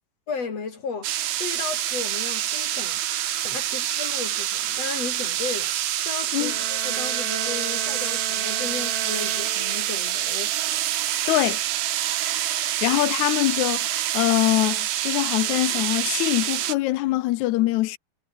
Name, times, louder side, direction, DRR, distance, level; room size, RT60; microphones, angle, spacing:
voice 1, 0.3-5.7 6.0-10.5, left 5 dB, 45° left, 4.5 m, -35 dB
sound 1, 1.0-16.7, right 12 dB, 90° right, 3.3 m, -26 dB
sound 2, 6.3-10.2, right 6 dB, 40° right, 2.6 m, -36 dB
voice 2, 11.3-11.6 12.6-18.0, left 17 dB, 80° left, 1.7 m, -23 dB
omnidirectional pair, 4.1 m